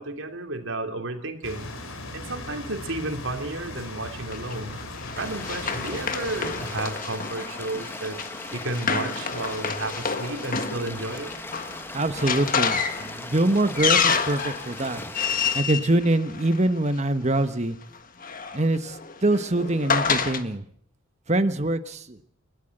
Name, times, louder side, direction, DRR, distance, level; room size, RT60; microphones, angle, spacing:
voice 1, 0.0-1.7 2.1-4.8 5.2-8.2 8.5-11.3, right 2 dB, 70° right, 5 dB, 3.3 m, -32 dB
sound 1, 1.4-6.9, left 2 dB, 80° left, 3.5 m, -38 dB
Run, 4.3-16.9 17.9-20.4, left 6 dB, 40° left, 1.6 m, -29 dB
sound 2, 5.1-15.6, left 2 dB, 10° left, 1.2 m, -39 dB
voice 2, 11.9-15.0 15.5-17.8 18.5-20.7 21.3-22.2, right 2 dB, 35° right, 10 dB, 1.3 m, -24 dB
29.5 x 13.0 x 8.0 m, 0.64 s
head